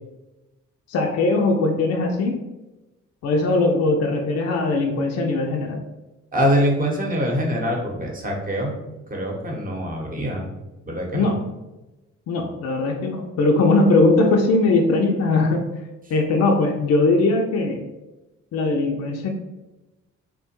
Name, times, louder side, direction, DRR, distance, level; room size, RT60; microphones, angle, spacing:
voice 1, 0.9-2.4 3.2-5.8 11.1-11.4 12.3-15.7 16.1-17.8 18.5-19.3, left 2 dB, 50° left, 2 dB, 0.4 m, -20 dB
voice 2, 6.3-8.8 9.1-10.5 10.8-11.3, equal, 25° right, -1 dB, 0.9 m, -24 dB
2.9 x 2.1 x 2.9 m, 1.0 s
hypercardioid pair, 50°, 33 cm